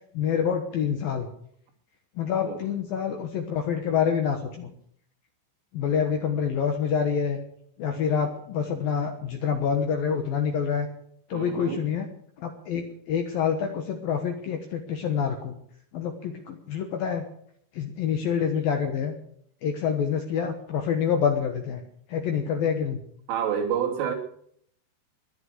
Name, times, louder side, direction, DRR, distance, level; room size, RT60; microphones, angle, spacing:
voice 1, 0.1-1.3 2.2-4.7 5.7-7.4 7.8-10.9 11.3-12.1 12.4-15.6 15.9-17.2 17.7-19.2 19.6-21.8 22.1-23.0, left 7 dB, 65° left, 5 dB, 2.5 m, -27 dB
voice 2, 11.3-11.9 23.3-24.1, right 8 dB, 85° right, 2 dB, 5.3 m, -28 dB
20.0 x 11.0 x 6.6 m, 0.66 s
omnidirectional pair, 5.6 m